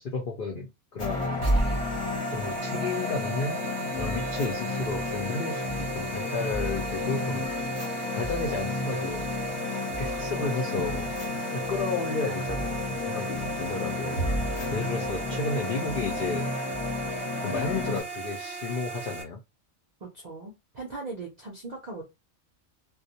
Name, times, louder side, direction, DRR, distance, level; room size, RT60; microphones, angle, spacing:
voice 1, 0.0-1.5 2.3-3.6 4.0-7.5 8.2-9.3 10.0-11.1 11.5-14.3 14.7-16.5 17.4-19.4, left 4 dB, 85° left, 1 dB, 0.4 m, -32 dB
sound 1, 1.0-18.0, left 2 dB, 30° left, 0.7 m, -31 dB
sound 2, 1.4-19.2, right 4 dB, 30° right, 0.6 m, -38 dB
voice 2, 20.0-22.0, right 3 dB, 70° right, 0 dB, 0.4 m, -39 dB
2.3 x 2.0 x 2.7 m, 0.23 s
omnidirectional pair, 1.5 m